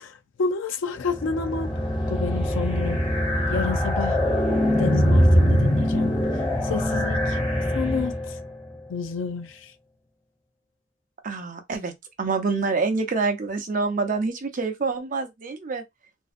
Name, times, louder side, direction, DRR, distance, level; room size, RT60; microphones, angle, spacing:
voice 1, 0.0-1.7 2.1-3.0 3.5-4.2 4.8-6.2 6.6-7.4 7.7-8.4 8.9-9.7, left 5 dB, 75° left, 0.4 m, -30 dB
sound 1, 1.0-8.4, equal, 25° left, 0.9 m, -22 dB
voice 2, 11.2-11.9 12.2-15.8, right 4 dB, 45° right, 0.6 m, -26 dB
2.6 x 2.2 x 2.4 m
head